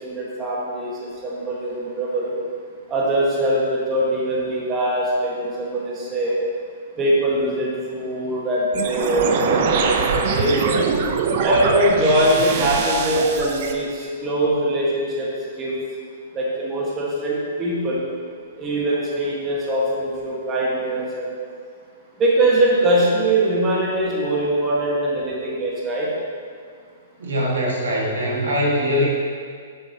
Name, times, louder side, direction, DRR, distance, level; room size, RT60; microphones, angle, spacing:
voice 1, 0.0-2.3 2.9-6.4 7.0-10.8 11.4-15.3 15.6-15.8 16.3-18.0 18.6-21.3 22.2-26.1, right 1 dB, 25° right, -5 dB, 1.5 m, -22 dB
sound 1, 8.7-13.7, right 5 dB, 50° right, 0.6 m, -23 dB
voice 2, 27.2-29.1, equal, 80° right, -4 dB, 1.8 m, -22 dB
7.6 x 6.2 x 2.9 m, 2.1 s
hypercardioid pair, 130°, 0 cm